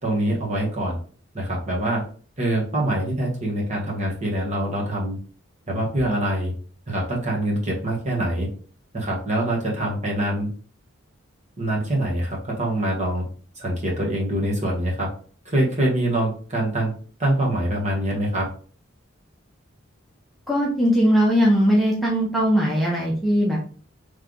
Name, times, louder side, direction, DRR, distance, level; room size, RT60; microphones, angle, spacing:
voice 1, 0.0-1.0 1.3-2.0 2.4-5.2 5.7-6.5 6.9-8.5 8.9-10.5 11.6-13.2 13.6-15.1 15.4-16.9 17.2-18.5, right 1 dB, 35° right, -3 dB, 1.4 m, -24 dB
voice 2, 20.5-23.7, equal, ahead, -5 dB, 0.8 m, -19 dB
3.3 x 3.3 x 3.8 m, 0.42 s
head